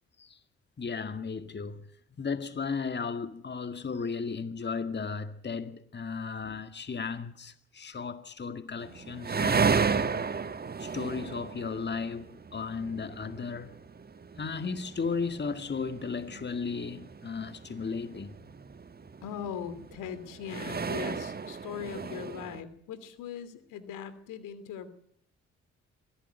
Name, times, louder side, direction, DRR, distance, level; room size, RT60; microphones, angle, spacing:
voice 1, 0.8-1.8 2.2-10.1 10.8-13.8 14.4-18.3, left 5 dB, 35° left, 2.0 m, -35 dB
sound 1, 8.8-22.6, right 5 dB, 30° right, 1.3 m, -34 dB
voice 2, 19.2-24.9, left 8 dB, 75° left, 2.8 m, -40 dB
23.5 x 16.5 x 9.1 m
hypercardioid pair, 55°, 31 cm